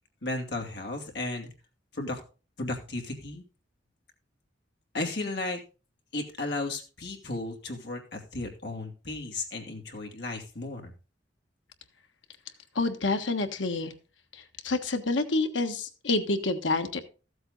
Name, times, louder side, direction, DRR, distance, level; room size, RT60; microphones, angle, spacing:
voice 1, 0.2-1.5 1.9-2.2 2.6-3.4 4.9-5.6 6.1-10.9, left 2 dB, 65° left, 2 dB, 2.7 m, -34 dB
voice 2, 12.7-13.9 14.3-17.0, left 3 dB, 90° left, 7 dB, 1.3 m, -28 dB
14.0 x 7.9 x 4.0 m, 0.35 s
head